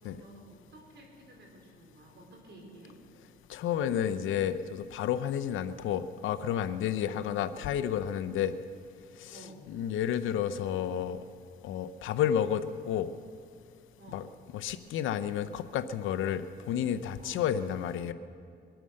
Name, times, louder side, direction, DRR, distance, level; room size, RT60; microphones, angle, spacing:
voice 1, 0.0-3.0 6.9-7.2 9.3-9.6 14.0-14.3 17.2-17.4, right 1 dB, 60° right, 0 dB, 4.4 m, -52 dB
voice 2, 3.5-8.5 9.2-9.4 9.7-11.2 11.6-13.1 14.1-14.2 14.5-18.1, left 9 dB, 85° left, 11 dB, 0.8 m, -31 dB
23.0 x 9.2 x 6.5 m, 2.2 s
cardioid pair, 90°, 20 cm